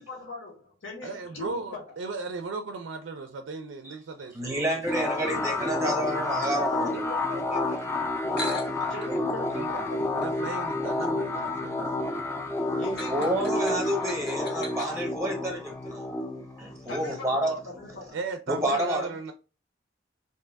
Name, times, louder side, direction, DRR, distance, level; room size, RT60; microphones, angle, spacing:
voice 1, 0.0-1.8 5.2-5.7 6.7-7.9 8.7-10.2 12.7-13.8 16.8-18.2, left 2 dB, 80° left, 0.9 m, -41 dB
voice 2, 1.0-5.1 9.0-9.9 10.1-12.2 18.1-19.3, right 4 dB, 80° right, 0.3 m, -37 dB
voice 3, 4.3-6.9 13.1-16.0 16.6-17.6 18.5-19.1, right 1 dB, 15° right, 0.7 m, -29 dB
sound 1, 4.9-18.1, left 2 dB, 15° left, 0.4 m, -30 dB
sound 2, 8.3-15.0, left 1 dB, 55° left, 0.6 m, -42 dB
2.9 x 2.2 x 3.3 m
head